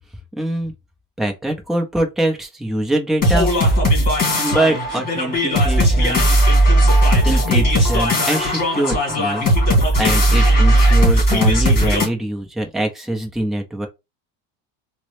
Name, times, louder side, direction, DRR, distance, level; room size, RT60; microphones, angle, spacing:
voice 1, 0.4-0.7 1.2-3.8 4.3-6.3 7.2-9.5 10.0-13.9, right 1 dB, ahead, 0.5 m, -23 dB
sound 1, 3.2-12.1, right 1 dB, 25° left, 2.0 m, -16 dB
3.5 x 2.1 x 3.2 m
cardioid pair, 155°, 37 cm